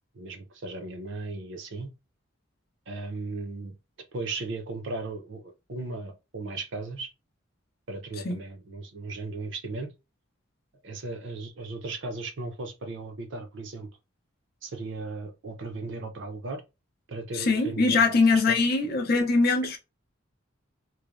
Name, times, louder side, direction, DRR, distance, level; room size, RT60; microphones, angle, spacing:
voice 1, 0.1-1.9 2.9-3.8 4.1-7.1 7.9-9.9 10.8-13.9 14.6-16.6 17.1-18.0 18.3-18.6, right 3 dB, 60° right, 0.5 m, -36 dB
voice 2, 17.3-19.8, left 3 dB, 50° left, 0.5 m, -22 dB
3.1 x 2.0 x 2.4 m
head